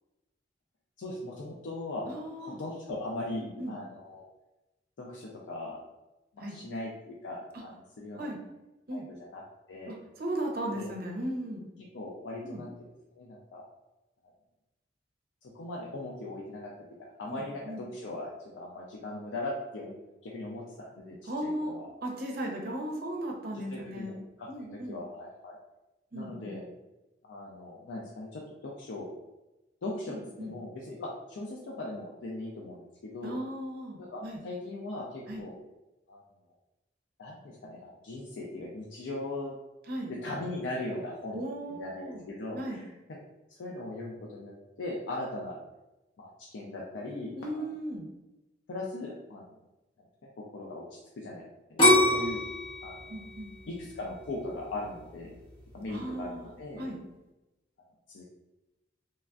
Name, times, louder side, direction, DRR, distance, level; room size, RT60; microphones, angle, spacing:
voice 1, 1.0-2.1 2.4-4.2 5.0-5.8 6.3-8.3 8.9-9.0 9.3-9.4 9.7-9.9 10.7-10.9 11.9-12.9 13.2-13.6 15.5-16.7 17.2-20.0 20.2-21.9 23.5-25.6 26.1-26.6 27.2-29.1 29.8-33.4 34.0-35.5 36.1-36.2 37.2-39.5 40.1-41.4 41.8-43.2 43.5-45.6 46.2-47.7 48.7-49.5 50.5-51.4 51.7-52.4 52.8-53.1 53.7-55.4 55.7-56.8 58.1-58.2, left 2 dB, 90° left, -3 dB, 0.4 m, -39 dB
voice 2, 2.1-2.6 3.3-3.7 6.4-6.5 8.1-8.4 8.9-9.1 9.9-11.7 12.4-12.6 17.2-17.8 21.3-25.0 26.1-26.6 30.1-30.5 33.2-34.4 35.3-35.4 39.9-40.1 41.3-42.2 42.5-42.8 47.3-48.1 53.1-53.5 55.9-56.5 56.8-57.0, right 1 dB, 55° right, 0 dB, 0.6 m, -37 dB
sound 1, 51.8-54.7 55.2-55.7, left 1 dB, 30° left, 1.0 m, -25 dB
3.2 x 2.4 x 2.3 m, 1.0 s
head